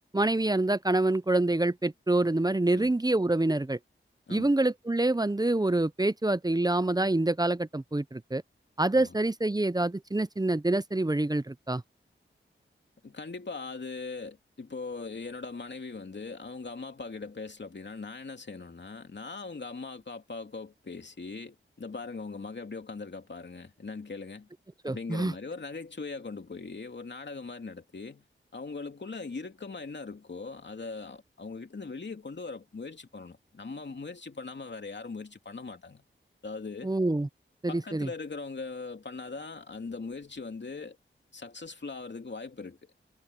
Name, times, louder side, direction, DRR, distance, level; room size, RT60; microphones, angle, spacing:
voice 1, 0.1-3.8 4.3-8.4 8.8-11.8 24.8-25.3 36.8-37.3 37.6-38.1, right 2 dB, 20° right, 0.8 m, -26 dB
voice 2, 13.0-24.5 24.9-28.2 28.5-36.0 36.4-37.0 37.7-41.0 41.3-42.9, left 4 dB, 60° left, 2.8 m, -40 dB
cardioid pair, 50°, 21 cm